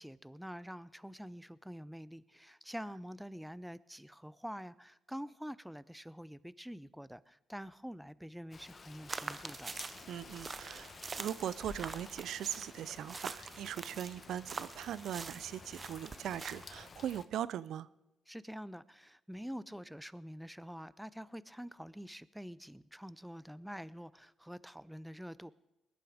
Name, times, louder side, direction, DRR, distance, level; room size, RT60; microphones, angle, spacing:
voice 1, 0.0-9.7 18.3-25.5, equal, ahead, 18 dB, 0.5 m, -46 dB
Rain, 8.5-17.3, left 4 dB, 40° left, 1.1 m, -53 dB
sound 1, 9.1-16.8, right 4 dB, 35° right, 0.8 m, -45 dB
voice 2, 10.1-17.9, right 10 dB, 75° right, 19 dB, 0.5 m, -40 dB
20.5 x 11.5 x 5.0 m, 0.96 s
cardioid pair, 90°, 0 cm